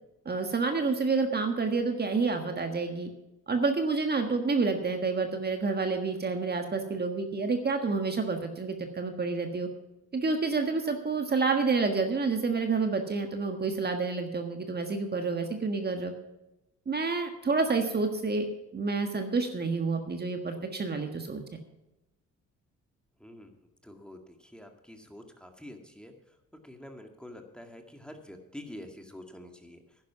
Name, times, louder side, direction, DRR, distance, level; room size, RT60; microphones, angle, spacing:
voice 1, 0.2-3.1 3.5-9.7 10.1-16.1 16.8-18.5 18.7-21.4, right 4 dB, 35° right, 5 dB, 1.5 m, -29 dB
voice 2, 23.2-23.5 23.8-26.1 26.6-29.8, left 1 dB, 5° left, 4 dB, 1.9 m, -47 dB
11.0 x 10.5 x 6.0 m, 0.94 s
cardioid pair, 90°, 30 cm